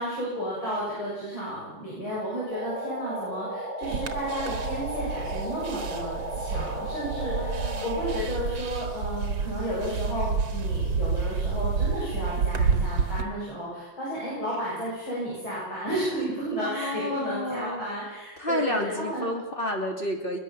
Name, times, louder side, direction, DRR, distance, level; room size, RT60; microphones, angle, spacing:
voice 1, 0.0-19.3, equal, 75° left, -6 dB, 7.7 m, -32 dB
sound 1, 2.5-8.2, right 1 dB, 10° right, 3.9 m, -35 dB
sound 2, 3.8-13.2, right 5 dB, 70° right, 2.3 m, -29 dB
voice 2, 7.2-7.9 14.3-14.5 16.6-17.8 18.4-20.4, left 1 dB, 25° left, 1 dB, 3.2 m, -31 dB
21.0 x 21.0 x 7.1 m, 1.1 s
omnidirectional pair, 2.2 m